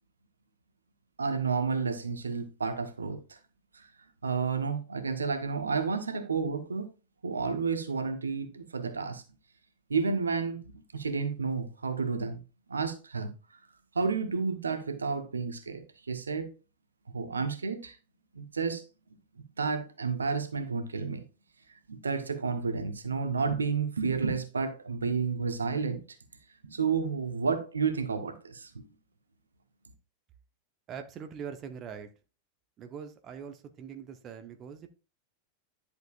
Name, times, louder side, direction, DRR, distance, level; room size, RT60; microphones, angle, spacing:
voice 1, 1.2-3.4 3.7-3.9 4.2-6.9 7.2-9.2 9.9-12.4 12.7-13.3 13.9-16.5 17.1-18.0 18.3-18.8 19.6-21.2 21.9-26.0 26.6-28.8, right 5 dB, 75° right, 1.1 m, -31 dB
voice 2, 30.9-32.1 32.8-34.9, right 7 dB, 30° right, 0.9 m, -42 dB
11.0 x 6.8 x 2.5 m
figure-of-eight pair, 90°, 0 cm